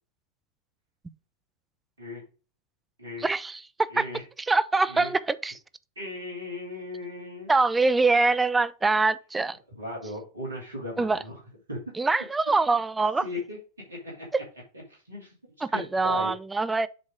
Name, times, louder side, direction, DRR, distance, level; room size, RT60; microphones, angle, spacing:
voice 1, 3.2-3.9 4.5-5.6 7.5-9.6 11.0-11.2 12.0-13.3 14.3-14.4 15.6-16.9, right 3 dB, 10° right, 0.4 m, -24 dB
voice 2, 3.9-4.2 4.9-5.1 6.0-7.5 9.7-11.4 11.7-11.8 13.2-13.6 13.9-14.3 14.9-16.3, left 2 dB, 75° right, 2.3 m, -37 dB
7.6 x 3.6 x 5.0 m
figure-of-eight pair, 90°, 0 cm